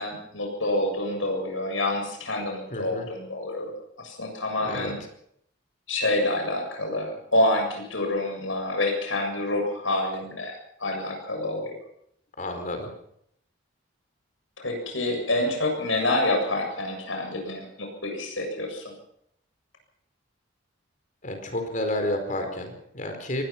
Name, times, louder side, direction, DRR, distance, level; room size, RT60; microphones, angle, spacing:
voice 1, 0.0-5.0 5.9-11.7 14.6-18.8, left 1 dB, 80° left, 3 dB, 7.5 m, -27 dB
voice 2, 2.7-3.1 4.6-4.9 12.4-12.9 21.2-23.4, left 1 dB, 40° left, 5 dB, 4.7 m, -30 dB
23.0 x 19.5 x 6.0 m, 0.72 s
head